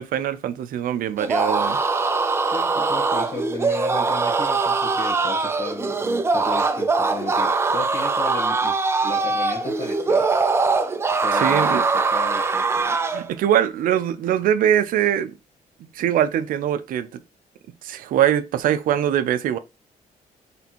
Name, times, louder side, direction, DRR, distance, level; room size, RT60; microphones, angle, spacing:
voice 1, 0.0-1.8 11.3-11.8 12.7-15.3 15.8-17.2 17.8-19.6, right 10 dB, 85° right, 0.4 m, -22 dB
sound 1, 1.2-13.3, right 4 dB, 20° right, 0.3 m, -22 dB
voice 2, 2.4-8.8 9.0-10.3 11.2-12.8, left 3 dB, 50° left, 1.4 m, -34 dB
4.1 x 3.4 x 2.9 m
wide cardioid pair, 170°, 14 cm